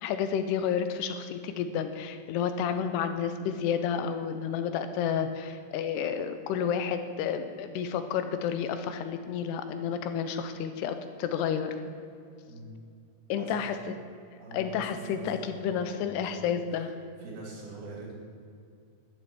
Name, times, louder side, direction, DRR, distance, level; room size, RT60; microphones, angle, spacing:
voice 1, 0.0-11.8 13.3-14.0 14.5-16.9, left 7 dB, 85° left, 9 dB, 2.6 m, -31 dB
voice 2, 15.1-16.6 17.2-18.1, right 2 dB, 80° right, -3 dB, 5.1 m, -43 dB
12.0 x 7.6 x 8.8 m, 2.4 s
omnidirectional pair, 5.0 m